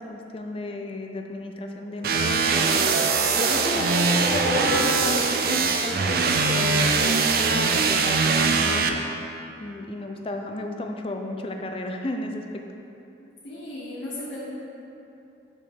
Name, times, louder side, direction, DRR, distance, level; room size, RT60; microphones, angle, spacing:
voice 1, 0.0-9.0 9.6-12.6, left 1 dB, 30° left, 4 dB, 0.4 m, -33 dB
sound 1, 2.0-8.9, right 4 dB, 50° right, 0.4 m, -22 dB
sound 2, 2.0-5.2, equal, 85° right, 1.6 m, -31 dB
voice 2, 13.2-14.4, left 1 dB, 80° left, -10 dB, 1.3 m, -36 dB
5.6 x 4.4 x 6.3 m, 2.8 s
head